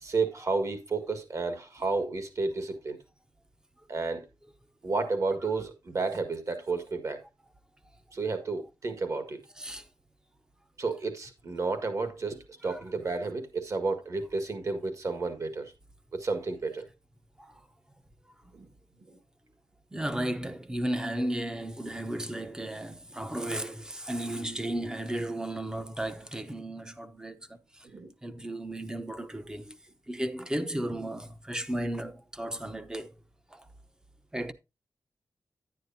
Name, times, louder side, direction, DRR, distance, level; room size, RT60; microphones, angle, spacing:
voice 1, 0.0-3.0 3.9-4.2 4.8-7.2 8.1-9.4 10.8-15.7 16.1-16.8 18.5-18.7 19.1-19.2 27.8-28.1, right 3 dB, 50° right, 1.8 m, -31 dB
voice 2, 9.6-9.9 12.7-12.8 17.4-17.6 19.9-27.9 28.2-29.8 30.1-33.1 33.5-33.7 34.3-34.5, right 1 dB, 10° right, 0.8 m, -34 dB
10.0 x 9.6 x 2.7 m
wide cardioid pair, 140°, 7 cm